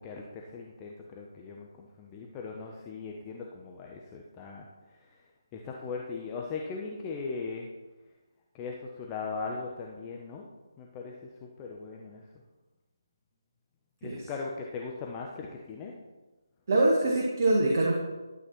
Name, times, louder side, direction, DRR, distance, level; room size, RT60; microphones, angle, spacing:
voice 1, 0.0-4.7 5.0-5.2 5.5-7.7 8.5-10.5 10.8-12.3 14.0-16.0, left 4 dB, 15° left, 0 dB, 0.7 m, -39 dB
voice 2, 16.7-18.0, right 2 dB, 45° right, -2 dB, 1.3 m, -24 dB
11.5 x 7.9 x 3.1 m, 1.2 s
figure-of-eight pair, 155°, 2 cm